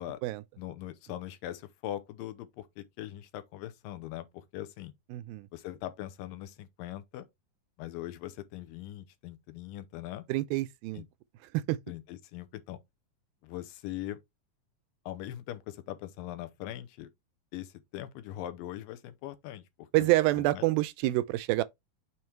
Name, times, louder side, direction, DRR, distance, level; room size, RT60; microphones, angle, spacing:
voice 1, 0.6-4.9 5.5-7.3 7.8-10.2 10.9-11.1 11.9-12.8 13.4-14.2 15.1-17.1 17.5-20.6, left 13 dB, 80° left, 2.3 m, -41 dB
voice 2, 5.1-5.5 10.3-11.0 11.5-11.8 19.9-21.6, right 18 dB, 85° right, 2.3 m, -27 dB
7.1 x 3.2 x 4.4 m
omnidirectional pair, 4.2 m